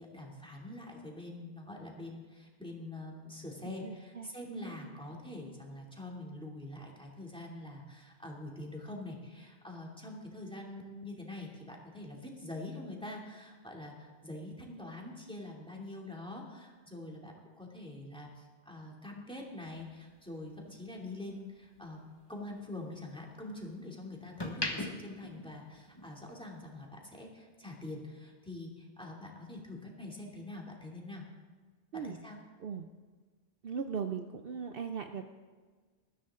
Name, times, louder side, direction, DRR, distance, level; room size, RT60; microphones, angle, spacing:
voice 1, 0.0-22.0 22.3-31.3 31.9-32.4, left 2 dB, 5° left, -2 dB, 2.8 m, -45 dB
voice 2, 3.8-4.9 31.9-32.2 32.6-32.9 33.6-35.2, right 6 dB, 60° right, 6 dB, 0.9 m, -39 dB
sound 1, 19.6-21.9 22.3-23.7 24.2-26.3 26.6-26.9, left 1 dB, 20° left, 1.6 m, -41 dB
20.5 x 14.0 x 3.7 m, 1.4 s
omnidirectional pair, 1.2 m